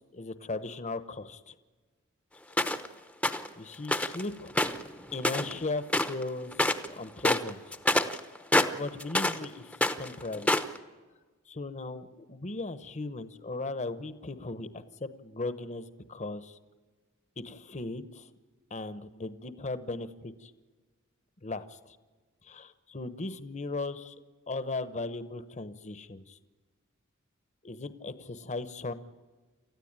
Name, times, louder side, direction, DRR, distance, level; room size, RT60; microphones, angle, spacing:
voice 1, 0.1-1.5 3.6-4.5 5.1-7.8 8.7-10.5 11.5-16.6 17.4-18.3 18.7-20.5 21.4-21.8 22.4-24.1 24.5-26.4 27.6-28.9, left 3 dB, 35° left, 12 dB, 1.0 m, -37 dB
sound 1, 2.6-2.9 3.2-3.5 3.9-4.2 4.5-5.6 5.9-6.2 6.5-6.9 7.2-9.4 9.7-10.8, left 1 dB, 5° left, 0.9 m, -27 dB
29.0 x 14.0 x 8.9 m, 1.4 s
head